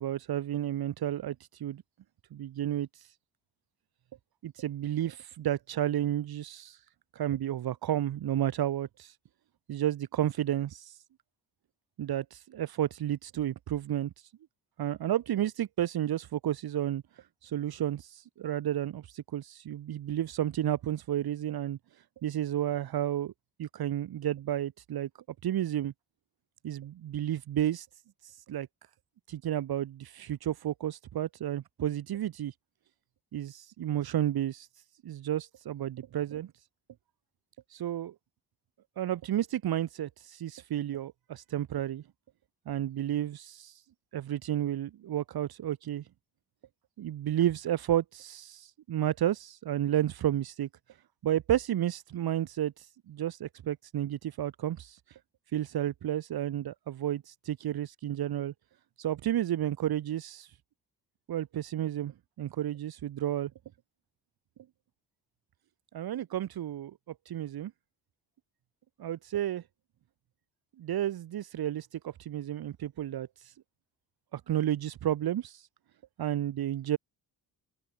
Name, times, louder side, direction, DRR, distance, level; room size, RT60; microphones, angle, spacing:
voice 1, 0.0-1.8 2.3-3.1 4.4-6.8 7.1-9.1 9.7-11.0 12.0-14.1 14.8-17.0 17.4-21.8 22.2-23.3 23.6-25.1 25.4-25.9 26.6-27.9 28.2-28.7 29.3-32.5 33.3-34.7 35.0-36.5 37.7-38.1 39.0-42.0 42.7-43.8 44.1-46.0 47.0-50.7 51.2-55.2 55.5-58.5 59.0-60.5 61.3-63.5 65.9-67.7 69.0-69.6 70.8-73.5 74.3-75.7 76.2-77.0, right 11 dB, 70° right, 2.2 m, -32 dB
cardioid pair, 135°, 38 cm